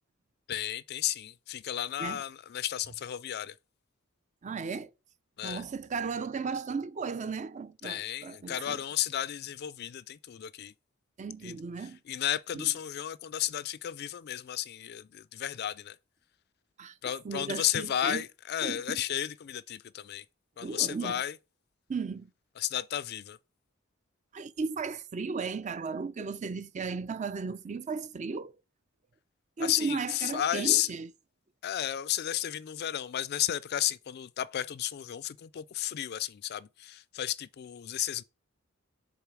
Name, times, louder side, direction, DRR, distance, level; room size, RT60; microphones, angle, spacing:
voice 1, 0.5-3.5 5.4-5.6 7.8-10.7 11.4-16.0 17.0-20.2 20.6-21.4 22.6-23.4 29.6-30.9 31.6-38.2, left 12 dB, 50° left, 0.3 m, -33 dB
voice 2, 4.4-4.9 5.4-8.8 11.2-12.0 12.5-12.7 16.8-16.9 17.2-18.2 18.6-19.0 20.6-21.2 21.9-22.3 24.3-28.5 29.6-31.1, right 5 dB, 35° right, 0.4 m, -35 dB
6.9 x 4.0 x 4.6 m
head